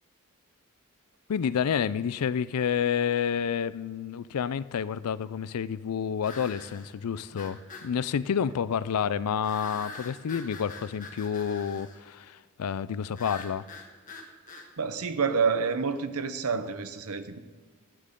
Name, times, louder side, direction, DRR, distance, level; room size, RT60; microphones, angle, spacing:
voice 1, 1.3-13.6, left 7 dB, 85° left, 17 dB, 0.4 m, -29 dB
sound 1, 6.2-6.9 7.4-7.9 9.4-12.0 13.1-14.7, left 3 dB, 35° left, 1.3 m, -44 dB
voice 2, 14.8-17.4, right 5 dB, 75° right, 10 dB, 0.8 m, -28 dB
13.0 x 11.5 x 3.8 m, 1.4 s
head